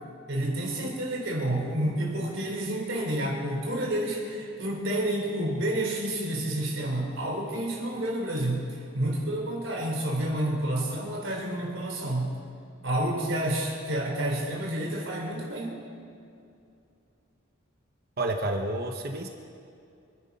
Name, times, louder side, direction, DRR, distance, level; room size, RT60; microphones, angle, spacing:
voice 1, 0.3-12.3 12.8-15.8, right 1 dB, 70° right, -1 dB, 3.8 m, -29 dB
voice 2, 18.2-19.3, right 2 dB, 50° right, 3 dB, 1.0 m, -29 dB
25.0 x 9.7 x 5.4 m, 2.5 s
head